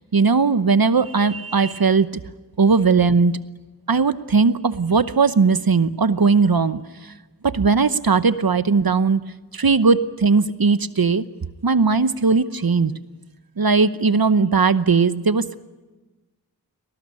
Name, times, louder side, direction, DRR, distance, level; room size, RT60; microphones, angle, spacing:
voice 1, 0.0-2.2 2.6-3.4 3.9-7.1 7.4-9.2 9.5-11.2 11.6-12.9 13.6-15.5, right 4 dB, 60° right, 13 dB, 0.9 m, -18 dB
21.0 x 18.0 x 9.7 m, 1.2 s
wide cardioid pair, 40°, 41 cm